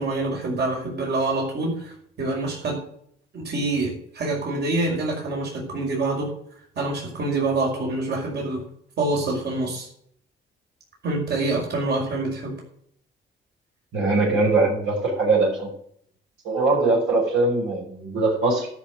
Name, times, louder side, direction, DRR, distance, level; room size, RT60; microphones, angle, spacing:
voice 1, 0.0-2.8 3.3-6.3 6.8-8.6 9.0-9.9 11.0-12.6, right 2 dB, 55° right, -2 dB, 5.5 m, -26 dB
voice 2, 13.9-15.7 16.4-18.7, right 3 dB, 80° right, -2 dB, 6.1 m, -21 dB
12.5 x 6.5 x 8.2 m, 0.65 s
cardioid pair, 90°, 20 cm